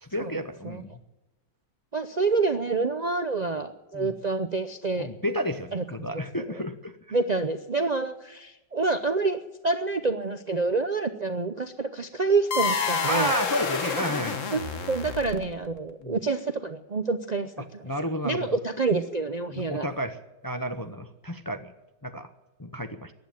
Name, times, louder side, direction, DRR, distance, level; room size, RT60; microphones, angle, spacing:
voice 1, 0.0-0.9 3.9-4.1 4.9-7.2 13.1-14.5 16.0-16.2 17.8-18.6 19.5-20.2 20.4-21.7 22.0-22.3 22.6-23.1, equal, 25° left, 7 dB, 0.4 m, -31 dB
voice 2, 1.9-5.1 5.7-5.8 6.1-6.2 6.5-6.6 7.1-9.4 9.6-13.3 14.5-17.8 18.2-19.9, right 3 dB, 85° right, 8 dB, 0.3 m, -27 dB
sound 1, 12.5-15.7, left 5 dB, 45° left, 1.5 m, -28 dB
15.0 x 10.5 x 8.8 m, 1.0 s
omnidirectional pair, 1.9 m